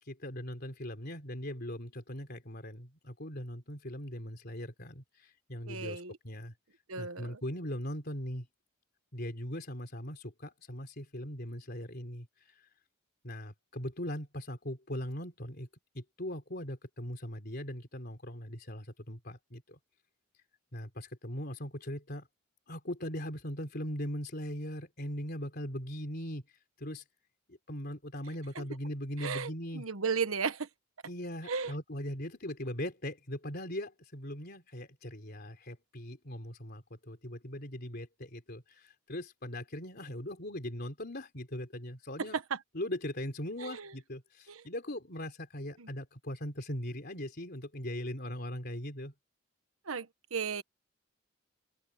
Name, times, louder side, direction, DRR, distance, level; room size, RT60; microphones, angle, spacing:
voice 1, 0.0-6.5 7.0-8.5 9.1-12.7 13.2-15.7 15.9-19.8 20.7-22.3 22.7-27.0 27.5-29.9 31.0-42.4 42.7-49.1, left 1 dB, 50° left, 3.8 m, -40 dB
voice 2, 5.7-6.2 6.9-7.4 29.2-30.7 31.5-31.7 42.3-42.6 43.6-43.9 44.5-44.6 45.8-45.9 49.9-50.6, right 5 dB, 90° right, 1.2 m, -35 dB
open air
head